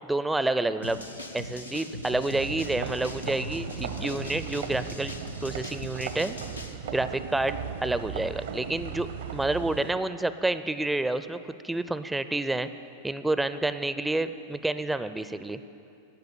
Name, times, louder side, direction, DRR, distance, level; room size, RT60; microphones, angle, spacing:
voice 1, 0.1-1.0 1.3-5.1 5.4-6.4 6.9-11.4 11.6-12.7 13.0-15.6, right 2 dB, 5° right, 12 dB, 0.4 m, -29 dB
sound 1, 0.8-6.7, left 1 dB, 90° left, 1.0 m, -40 dB
sound 2, 2.4-9.9, right 8 dB, 60° right, 0.7 m, -37 dB
12.5 x 7.9 x 8.4 m, 2.6 s
figure-of-eight pair, 90°, 0 cm